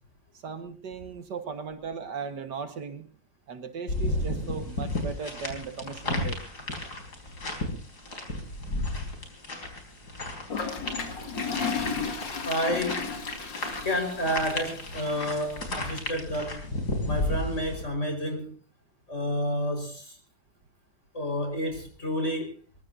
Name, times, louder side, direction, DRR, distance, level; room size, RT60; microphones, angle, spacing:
voice 1, 0.3-3.1 3.5-6.4, right 6 dB, 70° right, 8 dB, 2.0 m, -37 dB
sound 1, 3.9-17.8, left 1 dB, 60° left, 4.9 m, -34 dB
Toilet flush, 10.5-15.5, left 5 dB, 75° left, 2.9 m, -34 dB
voice 2, 12.4-13.1 13.8-16.7 17.0-18.5 19.1-20.2 21.1-22.5, equal, 40° left, 5 dB, 5.2 m, -30 dB
23.0 x 21.5 x 2.7 m, 0.36 s
omnidirectional pair, 2.0 m